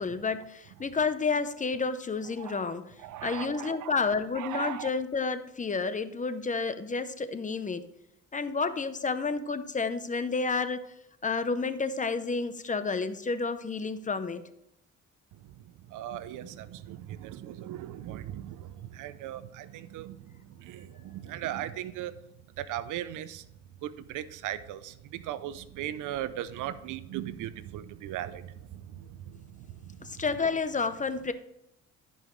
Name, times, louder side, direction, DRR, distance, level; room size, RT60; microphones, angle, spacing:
voice 1, 0.0-2.9 3.2-7.8 8.3-10.9 11.2-14.4 30.0-31.3, left 4 dB, 25° left, 11 dB, 0.7 m, -30 dB
voice 2, 3.0-3.9 4.4-4.9 15.9-20.2 20.6-22.1 22.6-23.4 23.8-28.5 28.9-29.0, right 12 dB, 85° right, 14 dB, 0.6 m, -38 dB
13.5 x 5.5 x 3.2 m, 0.81 s
cardioid pair, 90°, 30 cm